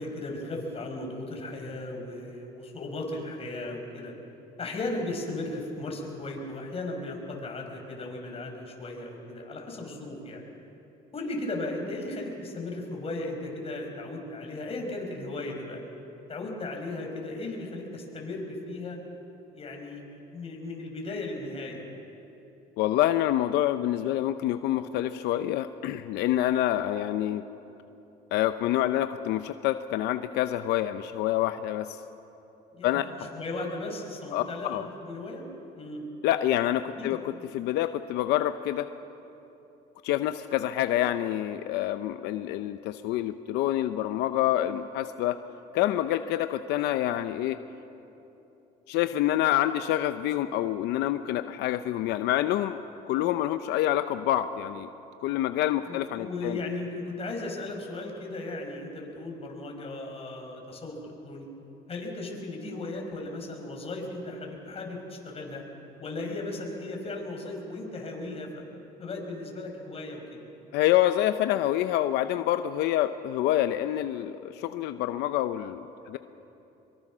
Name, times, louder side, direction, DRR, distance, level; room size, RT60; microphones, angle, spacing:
voice 1, 0.0-4.1 4.6-10.4 11.1-15.8 16.3-19.0 19.5-20.0 20.3-21.8 32.7-35.4 35.7-36.0 37.0-37.4 55.7-61.0 61.2-61.5 61.9-65.6 66.0-68.6 69.0-70.4, left 2 dB, 35° left, 1 dB, 5.2 m, -36 dB
voice 2, 22.8-27.4 28.3-32.0 32.8-33.1 34.3-34.9 36.2-38.9 40.0-45.4 45.7-47.6 48.9-52.8 53.1-54.9 55.2-56.6 70.7-76.2, left 13 dB, 90° left, 10 dB, 0.7 m, -27 dB
24.5 x 23.0 x 6.2 m, 3.0 s
cardioid pair, 110°, 17 cm